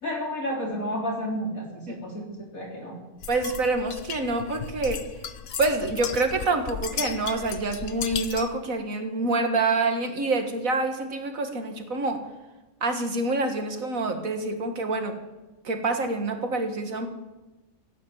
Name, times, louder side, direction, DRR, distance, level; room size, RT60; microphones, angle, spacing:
voice 1, 0.0-3.0, equal, 85° left, -1 dB, 4.2 m, -31 dB
sound 1, 3.2-8.6, left 7 dB, 50° left, 1.0 m, -35 dB
voice 2, 3.3-5.0 5.6-12.2 12.8-15.2 15.6-17.1, right 3 dB, 80° right, 5 dB, 2.2 m, -26 dB
16.5 x 9.8 x 8.8 m, 1.1 s
omnidirectional pair, 1.4 m